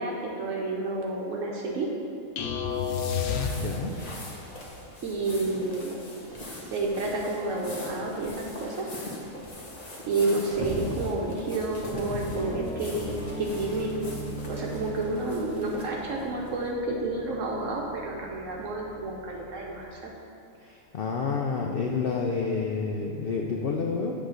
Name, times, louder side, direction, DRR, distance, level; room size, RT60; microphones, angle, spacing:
voice 1, 0.0-1.9 5.0-6.0 6.7-8.9 10.1-14.2 14.4-20.1, right 2 dB, 70° right, -1 dB, 1.0 m, -30 dB
sound 1, 2.4-4.1, left 6 dB, 90° left, 1.1 m, -29 dB
sound 2, 3.0-16.6, left 1 dB, 30° left, 1.0 m, -40 dB
sound 3, 11.9-19.8, equal, 5° right, 0.6 m, -40 dB
voice 2, 20.6-24.1, left 5 dB, 70° left, 0 dB, 0.5 m, -29 dB
8.1 x 3.1 x 6.3 m, 2.6 s
omnidirectional pair, 1.5 m